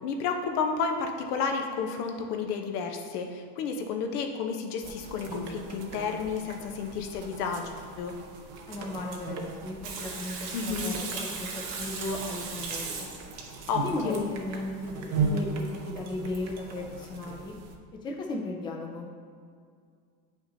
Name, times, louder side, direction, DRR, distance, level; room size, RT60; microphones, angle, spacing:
voice 1, 0.0-7.7 8.0-8.1 10.5-10.9 13.7-14.2, left 5 dB, 75° left, 4 dB, 1.0 m, -31 dB
sound 1, 4.8-17.8, right 4 dB, 35° right, 0.8 m, -38 dB
voice 2, 8.7-10.4 10.6-13.1 13.8-17.5 18.0-19.1, left 2 dB, 10° left, -1 dB, 0.5 m, -35 dB
Water tap faucet / Sink (filling or washing), 9.8-14.1 15.6-15.7 16.0-16.1 16.3-16.4, right 4 dB, 90° right, 1.6 m, -37 dB
8.5 x 5.8 x 2.7 m, 2.1 s
supercardioid pair, 135°, 46 cm